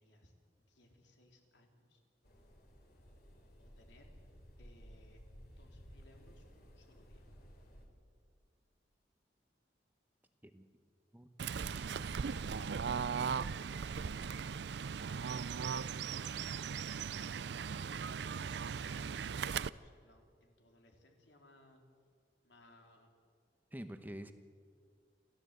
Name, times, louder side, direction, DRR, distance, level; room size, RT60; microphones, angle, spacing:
voice 1, 0.0-2.0 3.6-4.1 4.6-7.3 18.0-21.8 22.4-23.1, left 1 dB, 85° left, 2 dB, 3.3 m, -64 dB
sound 1, 2.2-7.9, equal, 55° left, 3.3 m, -57 dB
Fowl / Bird, 11.4-19.7, right 6 dB, 70° right, 0.5 m, -38 dB
voice 2, 11.5-12.6 23.7-24.3, equal, 10° right, 8 dB, 0.9 m, -49 dB
29.5 x 12.5 x 8.0 m, 2.2 s
head